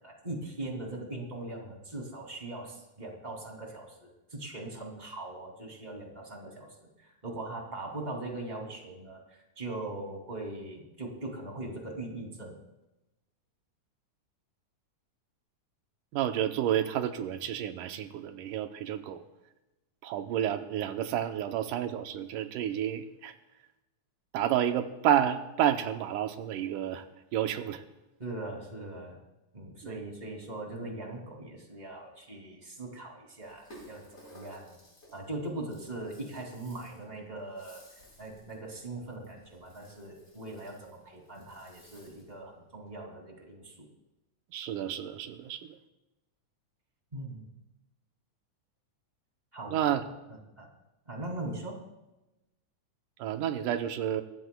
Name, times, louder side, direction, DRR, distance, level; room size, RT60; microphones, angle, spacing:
voice 1, 0.0-12.6 28.2-29.2 29.5-34.8 35.1-37.8 38.2-43.9 47.1-47.5 49.5-50.0 50.6-50.7 51.1-51.8, right 2 dB, 15° right, 1 dB, 2.7 m, -40 dB
voice 2, 16.1-19.2 20.0-23.4 24.3-27.1 27.3-27.8 29.8-30.0 44.5-45.8 49.7-50.1 53.2-54.2, right 10 dB, 90° right, 7 dB, 2.4 m, -30 dB
Rattle (instrument), 33.4-42.4, equal, 20° left, 4.7 m, -57 dB
23.5 x 19.0 x 2.3 m, 0.98 s
omnidirectional pair, 3.6 m